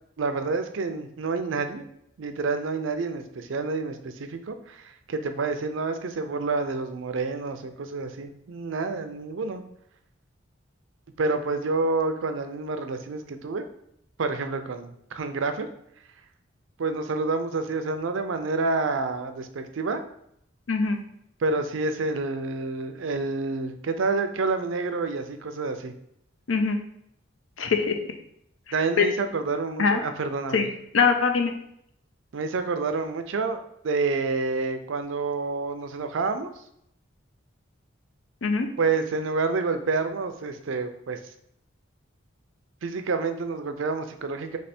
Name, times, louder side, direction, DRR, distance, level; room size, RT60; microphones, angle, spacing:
voice 1, 0.2-1.9 2.2-9.6 11.2-13.7 14.2-15.7 16.8-20.0 21.4-25.9 28.7-30.6 32.3-36.5 38.8-41.2 42.8-44.6, right 3 dB, 75° right, 8 dB, 0.5 m, -28 dB
voice 2, 20.7-21.0 26.5-26.8 27.6-27.9 29.0-29.1 29.8-30.0 30.5-30.7 30.9-31.5 38.4-38.7, left 5 dB, 80° left, 6 dB, 0.6 m, -22 dB
3.3 x 3.1 x 4.2 m, 0.74 s
head